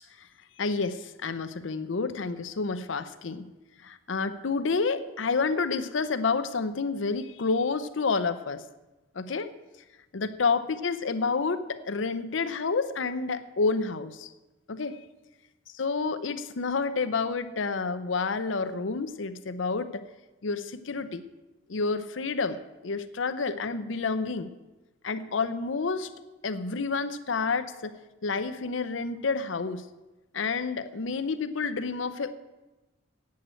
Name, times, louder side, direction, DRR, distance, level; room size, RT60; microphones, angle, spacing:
voice 1, 0.6-3.5 3.8-8.6 9.2-9.5 10.1-14.3 14.7-15.0 15.8-20.0 20.4-21.2 21.7-24.5 25.0-26.1 26.4-28.0 28.2-29.8 30.3-32.3, left 4 dB, 85° left, 11 dB, 0.7 m, -29 dB
8.5 x 7.5 x 9.0 m, 1.1 s
head